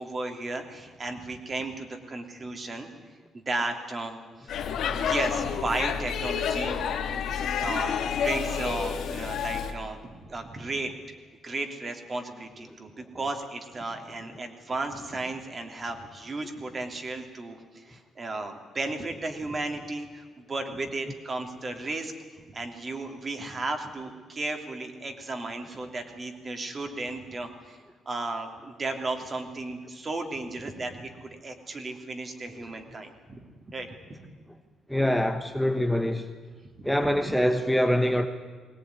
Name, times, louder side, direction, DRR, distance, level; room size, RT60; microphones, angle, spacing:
voice 1, 0.0-2.9 3.3-4.7 4.9-6.8 7.6-10.9 11.4-33.4 33.7-33.9, right 2 dB, 35° right, 5 dB, 3.2 m, -34 dB
Speech / Shout / Subway metro underground, 4.5-9.7, left 7 dB, 75° left, 2.0 m, -29 dB
voice 2, 34.9-36.3 36.8-38.3, equal, ahead, 6 dB, 1.3 m, -24 dB
20.0 x 18.5 x 9.7 m, 1.5 s
cardioid pair, 90°, 0 cm